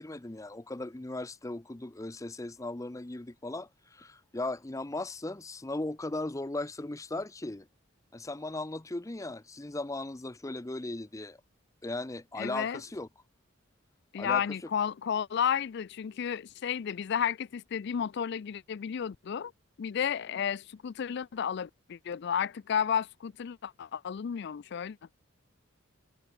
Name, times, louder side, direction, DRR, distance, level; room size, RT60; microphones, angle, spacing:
voice 1, 0.0-7.7 8.1-11.4 11.8-13.1 14.2-14.4, left 2 dB, 15° left, 0.6 m, -37 dB
voice 2, 12.4-12.8 14.1-19.5 19.8-25.0, left 8 dB, 55° left, 0.4 m, -32 dB
head